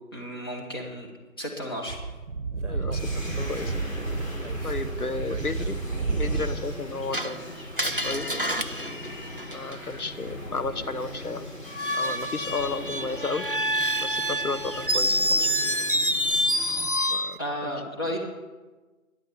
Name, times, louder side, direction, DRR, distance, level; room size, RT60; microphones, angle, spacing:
voice 1, 0.1-1.1 1.4-2.0 17.4-18.2, equal, 15° left, -1 dB, 1.3 m, -33 dB
Speech / Wind, 1.9-6.8, right 4 dB, 55° right, 0.9 m, -31 dB
voice 2, 2.7-3.1 3.4-3.7 4.6-5.8 6.1-7.5 7.8-8.4 9.5-11.5 11.9-13.4 14.0-15.5 17.1-17.7 18.0-18.2, left 3 dB, 85° left, 11 dB, 1.0 m, -33 dB
sound 1, 2.9-16.9, left 1 dB, 65° left, 3.6 m, -39 dB
Screech, 7.1-10.0 11.7-17.4, equal, 40° right, 0.5 m, -27 dB
11.5 x 10.5 x 6.9 m, 1.2 s
figure-of-eight pair, 160°, 43 cm